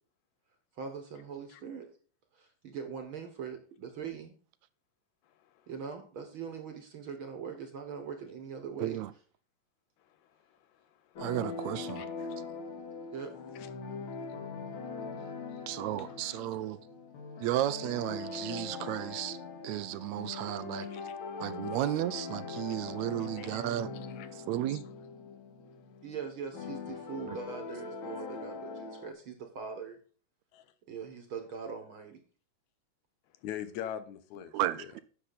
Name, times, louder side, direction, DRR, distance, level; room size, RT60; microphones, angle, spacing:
voice 1, 0.8-1.9 2.3-4.3 5.7-9.0 13.1-13.3 26.0-30.0 30.9-32.2, right 6 dB, 55° right, 1.7 m, -41 dB
voice 2, 8.8-9.1 11.2-12.1 15.7-16.8 17.4-19.4 19.6-20.9 21.4-23.9 24.3-24.8 27.3-27.4 34.5-35.0, right 13 dB, 80° right, 1.8 m, -33 dB
sound 1, 11.2-29.1, left 4 dB, 50° left, 2.0 m, -41 dB
voice 3, 16.1-16.4 18.3-18.4 20.8-21.4 23.4-23.7 24.2-24.8 30.5-30.7 33.4-34.5 34.8-34.9, left 10 dB, 80° left, 2.3 m, -43 dB
10.0 x 6.9 x 4.0 m
omnidirectional pair, 3.3 m